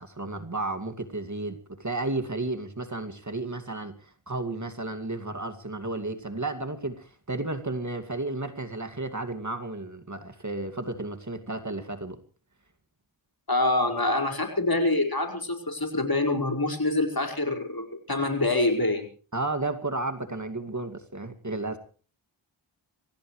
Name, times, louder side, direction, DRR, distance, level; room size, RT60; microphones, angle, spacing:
voice 1, 0.0-12.2 19.3-21.8, right 2 dB, 35° right, 7 dB, 2.4 m, -33 dB
voice 2, 13.5-19.1, left 2 dB, 45° left, 4 dB, 5.2 m, -26 dB
25.5 x 17.0 x 3.3 m, 0.38 s
cardioid pair, 40°, 50 cm